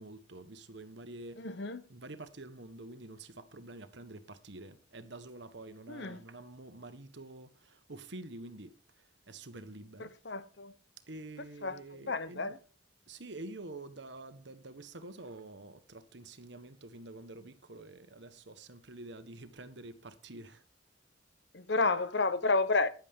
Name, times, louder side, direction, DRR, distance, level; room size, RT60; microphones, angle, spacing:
voice 1, 0.0-1.5 1.9-8.8 9.3-10.1 11.1-12.6 13.1-20.6, right 2 dB, 65° right, 1.3 m, -48 dB
voice 2, 1.4-1.8 5.9-6.2 10.0-10.7 11.4-11.8 12.1-12.6 21.5-22.9, left 3 dB, 60° left, 1.0 m, -31 dB
14.5 x 10.5 x 3.7 m
head